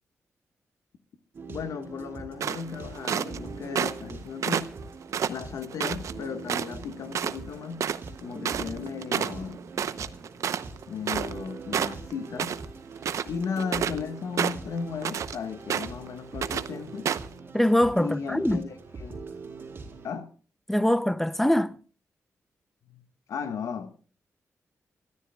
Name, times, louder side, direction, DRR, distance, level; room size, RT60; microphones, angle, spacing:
sound 1, 1.3-20.1, right 4 dB, 45° right, 3.7 m, -42 dB
voice 1, 1.5-4.7 5.3-7.9 8.2-9.6 10.9-12.6 13.2-17.1 18.0-19.2 20.0-20.3 22.9-23.0 23.3-23.9, left 6 dB, 85° left, 1.6 m, -35 dB
sound 2, 2.4-3.4 3.8-4.1 4.4-6.1 6.5-6.8 7.1-7.4 7.6-11.5 11.7-12.7 13.0-14.0 14.4-15.4 15.7-16.1 16.4-16.7 17.1-17.3, right 8 dB, 75° right, 0.8 m, -29 dB
voice 2, 17.5-18.6 20.7-21.7, left 1 dB, 5° left, 0.6 m, -23 dB
28.0 x 13.5 x 2.3 m
wide cardioid pair, 170°, 5 cm